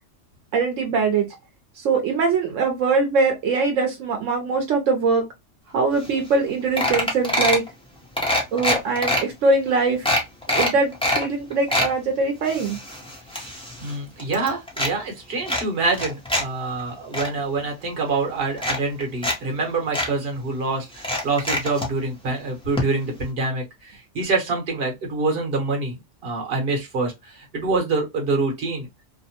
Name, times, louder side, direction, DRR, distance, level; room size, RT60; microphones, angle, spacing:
voice 1, 0.5-1.3 1.8-5.2 5.7-7.6 8.5-10.0 10.5-12.8, right 4 dB, 75° right, 1.0 m, -22 dB
sound 1, 6.0-6.1 6.3-6.5 6.8-7.7 8.2-9.2 9.7-9.8 10.0-11.2 11.5-11.9 12.4-13.9 14.2-14.9 15.5-16.4 16.8-17.3 18.1-18.2 18.6-19.4 19.6-19.7 19.9-20.1 21.0-21.9 22.8-22.9 23.1-23.2, left 1 dB, 5° left, 0.6 m, -24 dB
voice 2, 13.3-28.9, right 3 dB, 50° right, 1.1 m, -26 dB
2.8 x 2.1 x 2.7 m
omnidirectional pair, 1.3 m